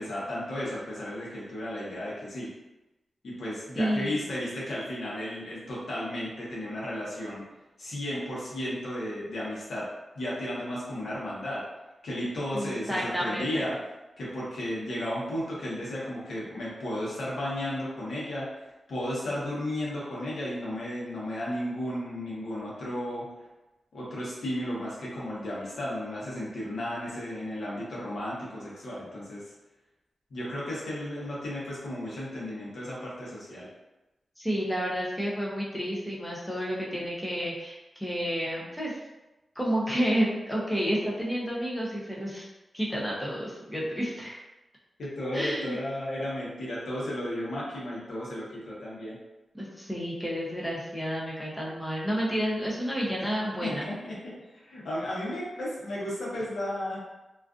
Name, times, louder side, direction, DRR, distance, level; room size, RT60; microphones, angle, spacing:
voice 1, 0.0-2.5 3.2-7.4 7.8-9.9 10.2-11.6 12.0-13.7 14.2-18.5 18.9-23.3 23.9-29.4 30.3-33.7 45.0-49.2 53.2-53.3 53.6-57.1, left 1 dB, 85° left, -6 dB, 0.8 m, -34 dB
voice 2, 3.8-4.2 12.5-13.7 34.4-39.0 39.6-42.5 42.7-44.4 45.3-45.8 49.5-53.9, equal, 5° left, -5 dB, 0.5 m, -30 dB
2.4 x 2.4 x 2.4 m, 1.0 s
wide cardioid pair, 115°, 0 cm